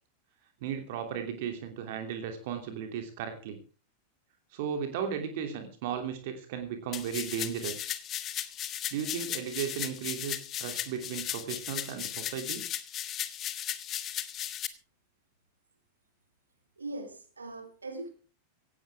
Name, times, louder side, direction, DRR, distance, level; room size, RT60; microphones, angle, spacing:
voice 1, 0.6-3.6 4.5-7.9 8.9-12.7, right 8 dB, 50° right, 6 dB, 3.0 m, -35 dB
sound 1, 6.9-14.7, left 11 dB, 30° left, 1.4 m, -36 dB
voice 2, 16.8-18.1, right 2 dB, 75° right, 6 dB, 3.2 m, -40 dB
17.0 x 16.5 x 3.6 m, 0.36 s
figure-of-eight pair, 90°, 0 cm